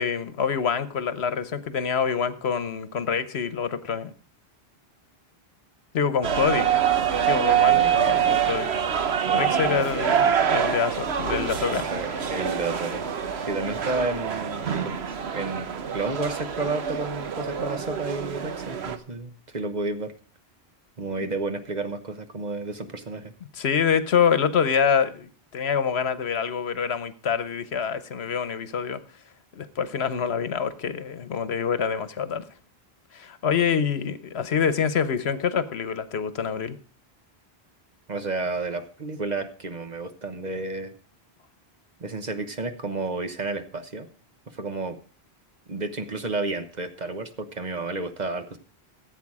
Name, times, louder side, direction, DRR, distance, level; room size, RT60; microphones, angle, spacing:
voice 1, 0.0-4.1 5.9-6.7 7.1-8.7 9.3-11.8 23.5-29.0 29.5-32.4 33.1-36.8, left 7 dB, 80° left, 1.2 m, -26 dB
sound 1, 6.2-19.0, right 8 dB, 80° right, 1.3 m, -25 dB
voice 2, 9.3-10.1 11.9-13.1 13.4-14.9 15.3-20.1 21.0-23.3 38.1-40.9 42.0-44.1 44.5-45.0 45.7-48.6, right 3 dB, 45° right, 1.2 m, -31 dB
15.0 x 8.1 x 4.8 m
omnidirectional pair, 1.1 m